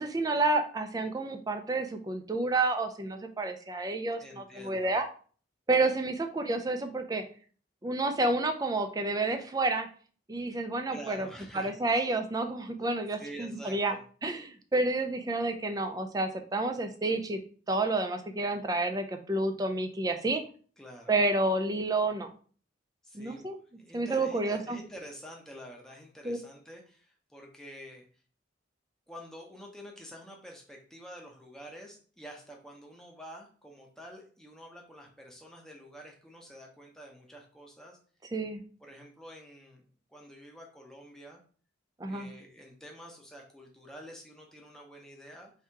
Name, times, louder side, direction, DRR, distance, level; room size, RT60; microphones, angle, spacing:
voice 1, 0.0-5.1 5.7-7.2 7.8-9.9 10.3-11.3 11.5-13.9 14.2-17.4 17.7-20.4 21.1-22.3 23.1-23.6 23.9-24.8 26.2-26.4 38.3-38.6 42.0-42.3, right 2 dB, 20° right, 6 dB, 0.4 m, -29 dB
voice 2, 4.2-5.0 10.9-11.8 13.2-14.0 20.8-21.2 23.0-23.5 23.8-28.0 29.1-38.0 38.8-39.8 40.1-41.4 42.1-45.5, equal, 5° left, 0 dB, 0.8 m, -48 dB
3.5 x 2.8 x 4.5 m, 0.43 s
head